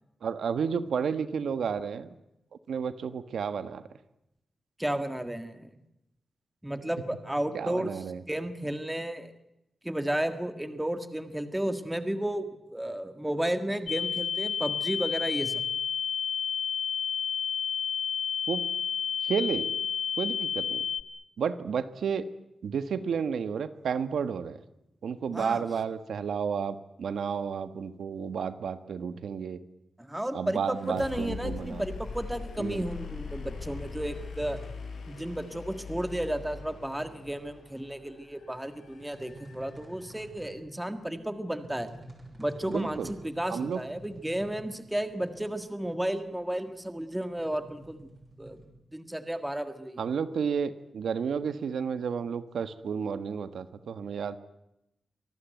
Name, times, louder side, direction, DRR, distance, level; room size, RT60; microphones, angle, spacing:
voice 1, 0.2-2.2 2.7-3.8 7.5-8.2 18.5-18.6 19.2-19.7 20.2-20.8 21.4-22.2 22.6-24.6 25.0-29.6 30.3-31.8 32.6-32.9 42.7-43.1 43.5-43.8 50.0-54.4, right 6 dB, 85° right, 12 dB, 1.3 m, -31 dB
voice 2, 4.8-5.8 6.6-7.9 8.3-9.3 9.8-15.5 25.3-25.7 30.0-34.6 35.1-41.9 42.4-48.1 48.4-48.6 48.9-50.0, right 1 dB, 5° right, 9 dB, 1.7 m, -33 dB
sound 1, 13.9-21.0, left 7 dB, 65° left, 1.4 m, -30 dB
sound 2, 30.7-40.4, left 5 dB, 80° left, 5.1 m, -42 dB
sound 3, 34.4-48.7, right 1 dB, 20° right, 6.6 m, -51 dB
25.5 x 19.0 x 9.2 m, 0.86 s
wide cardioid pair, 175°, 0 cm